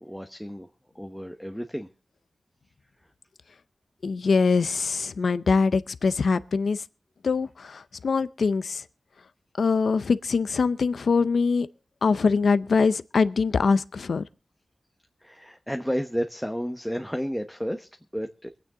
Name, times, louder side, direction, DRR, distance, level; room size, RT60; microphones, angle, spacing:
voice 1, 0.0-0.7 0.9-1.9 15.2-17.9 18.1-18.5, equal, ahead, 1.1 m, -31 dB
voice 2, 4.0-6.8 7.2-8.8 9.6-11.7 12.0-14.2, left 4 dB, 85° left, 0.6 m, -23 dB
24.0 x 9.2 x 3.8 m
wide cardioid pair, 80°, 0 cm